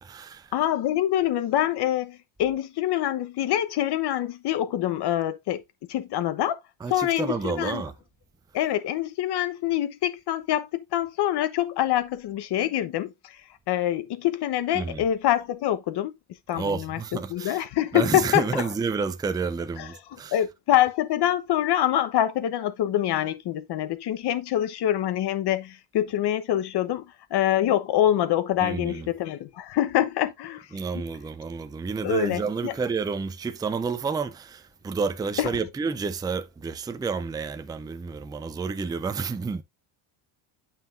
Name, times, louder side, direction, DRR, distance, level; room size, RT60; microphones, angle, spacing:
voice 1, 0.0-0.5 6.8-7.9 14.7-15.0 16.5-17.6 17.9-20.4 28.6-29.1 30.7-39.6, right 5 dB, 10° right, 0.4 m, -30 dB
voice 2, 0.5-5.6 5.9-6.6 6.9-7.8 8.5-13.1 13.7-16.1 16.5-17.0 17.3-18.7 19.8-19.9 20.3-27.0 27.3-30.7 30.9-31.0 32.0-32.7 35.4-35.5, left 12 dB, 50° left, 1.1 m, -25 dB
9.1 x 5.7 x 2.5 m
cardioid pair, 135°, 49 cm